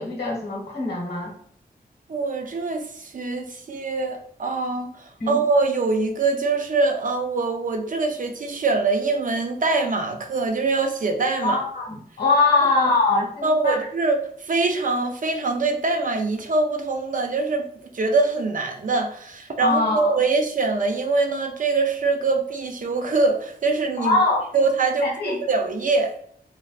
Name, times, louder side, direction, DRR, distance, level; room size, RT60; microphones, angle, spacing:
voice 1, 0.0-1.3 5.2-5.4 11.4-13.8 19.6-20.2 24.0-24.5 25.0-25.3, left 3 dB, 80° left, -2 dB, 1.2 m, -22 dB
voice 2, 2.1-4.9 5.3-11.6 13.4-24.2 24.5-26.1, right 3 dB, 55° right, 4 dB, 0.5 m, -23 dB
3.1 x 2.5 x 2.4 m, 0.63 s
wide cardioid pair, 110°, 17 cm